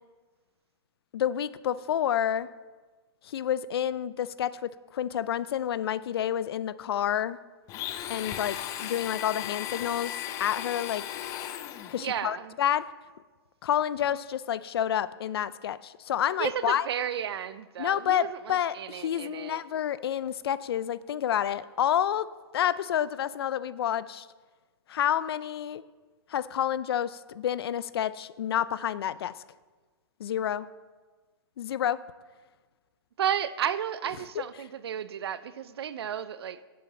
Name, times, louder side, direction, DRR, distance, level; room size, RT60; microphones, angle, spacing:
voice 1, 1.1-2.5 3.3-7.4 8.1-10.1 10.4-11.0 11.9-12.9 13.6-16.9 17.8-24.3 24.9-25.8 26.3-29.3 30.2-30.7 31.6-32.1, left 10 dB, 70° left, 0.4 m, -29 dB
Domestic sounds home sounds, 7.7-12.1, left 11 dB, 25° left, 0.5 m, -36 dB
voice 2, 12.0-12.5 16.4-19.6 33.2-36.6, right 9 dB, 75° right, 0.6 m, -33 dB
10.5 x 7.7 x 4.2 m
hypercardioid pair, 145°, 13 cm